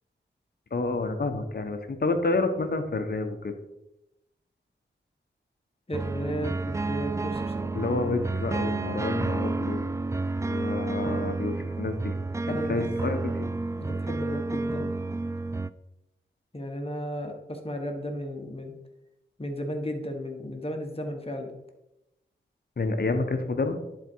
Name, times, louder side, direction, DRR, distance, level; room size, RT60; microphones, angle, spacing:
voice 1, 0.7-3.5 7.7-9.8 10.5-12.1 12.5-13.5 22.8-23.8, left 3 dB, 50° left, 7 dB, 1.2 m, -29 dB
voice 2, 5.9-7.7 12.5-12.9 13.8-14.9 16.5-18.7 19.4-21.5, equal, 30° left, 4 dB, 1.5 m, -34 dB
sound 1, 5.9-15.7, right 3 dB, 15° right, 0.3 m, -30 dB
11.0 x 4.6 x 4.7 m, 0.90 s
cardioid pair, 65°, 20 cm